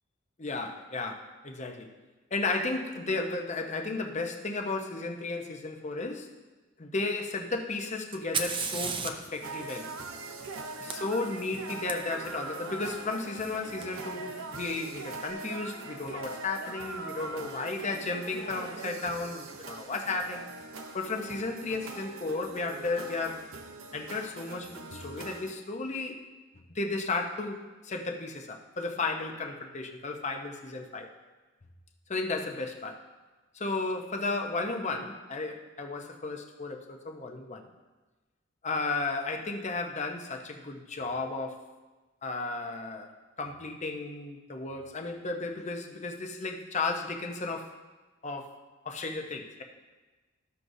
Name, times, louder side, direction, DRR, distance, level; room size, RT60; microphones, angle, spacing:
voice 1, 0.4-1.9 2.3-6.3 6.8-9.9 10.8-20.5 20.9-23.5 23.9-26.2 26.7-31.1 32.1-33.0 33.5-37.6 38.6-41.6 42.2-43.1 43.4-47.7 48.2-48.5 48.8-49.6, left 3 dB, 35° left, 3 dB, 0.7 m, -34 dB
Fire, 8.1-11.9 13.8-13.9 14.7-15.2, right 5 dB, 25° right, 0.5 m, -37 dB
sound 1, 9.4-25.5, right 3 dB, 85° right, 0.8 m, -42 dB
14.0 x 6.2 x 2.7 m, 1.2 s
head